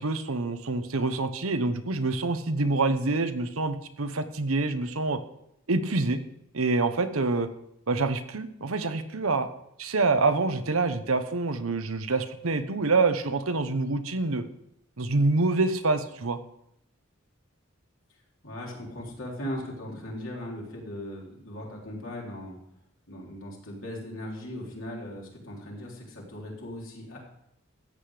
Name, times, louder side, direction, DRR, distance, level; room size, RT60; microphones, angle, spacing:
voice 1, 0.0-5.2 5.7-6.2 6.5-7.5 7.9-9.5 9.8-14.4 15.0-16.4, right 3 dB, 80° right, 10 dB, 1.0 m, -26 dB
voice 2, 18.4-22.5 23.1-27.2, left 1 dB, 65° left, -2 dB, 3.7 m, -38 dB
14.0 x 8.6 x 5.0 m, 0.76 s
head